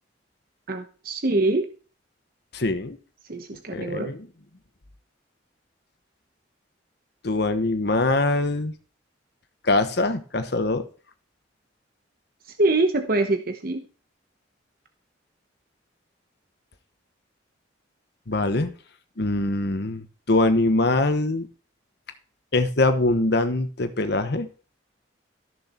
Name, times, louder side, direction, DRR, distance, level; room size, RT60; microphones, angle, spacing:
voice 1, 0.7-1.7 3.3-4.1 12.6-13.8, right 2 dB, 50° right, 7 dB, 1.0 m, -24 dB
voice 2, 2.5-3.0 3.7-4.2 7.2-8.7 9.6-10.8 18.3-18.7 19.2-21.5 22.5-24.5, left 2 dB, 60° left, 9 dB, 1.2 m, -23 dB
14.0 x 6.8 x 4.4 m, 0.37 s
head